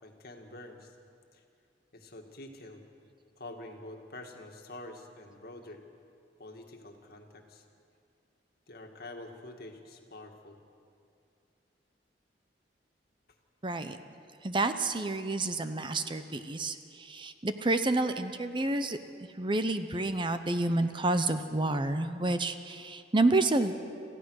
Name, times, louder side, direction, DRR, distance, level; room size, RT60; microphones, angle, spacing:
voice 1, 0.0-1.0 1.3-1.4 1.9-2.8 3.4-5.8 6.4-7.6 8.7-10.6, left 2 dB, 60° left, 3 dB, 2.0 m, -47 dB
voice 2, 13.6-14.0 14.4-19.0 19.4-23.7, right 2 dB, 30° right, 9 dB, 0.7 m, -29 dB
27.0 x 15.0 x 6.4 m, 2.5 s
head